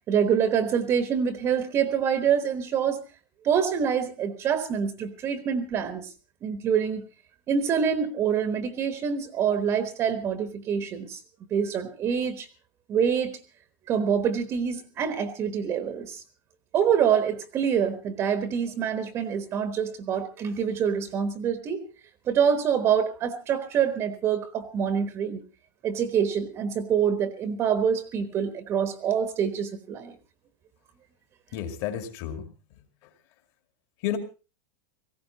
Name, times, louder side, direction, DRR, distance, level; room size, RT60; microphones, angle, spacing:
voice 1, 0.1-3.0 3.4-6.1 6.4-7.0 7.5-11.2 11.5-12.5 12.9-13.4 13.9-16.2 16.7-21.8 22.2-25.4 25.8-30.2, right 7 dB, 25° right, 10 dB, 1.2 m, -26 dB
voice 2, 31.5-33.1 34.0-34.2, left 10 dB, 40° left, 8 dB, 2.4 m, -33 dB
18.5 x 16.0 x 4.1 m, 0.33 s
supercardioid pair, 165°, 11 cm